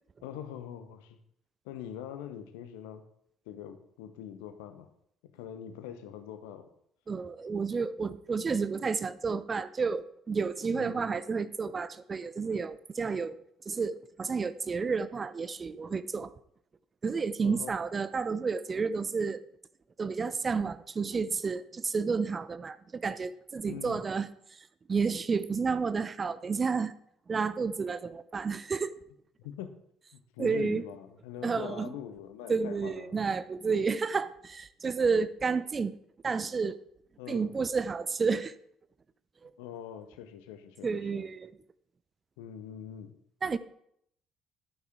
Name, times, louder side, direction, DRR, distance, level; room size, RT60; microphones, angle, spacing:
voice 1, 0.2-1.2 1.6-3.0 3.5-4.9 5.2-6.7 10.7-11.0 17.4-17.8 23.6-24.0 29.4-29.7 30.1-33.2 37.2-37.6 39.6-41.2 42.4-43.1, left 9 dB, 65° left, 9 dB, 0.9 m, -43 dB
voice 2, 7.1-13.4 13.7-16.3 17.0-19.4 20.0-26.9 27.3-28.9 30.4-30.8 31.4-31.9 32.5-35.9 36.2-36.8 37.3-38.5 39.4-39.5 40.8-41.5 43.4-43.6, right 5 dB, 30° right, 15 dB, 0.6 m, -31 dB
11.5 x 9.4 x 3.7 m, 0.70 s
figure-of-eight pair, 50°, 0 cm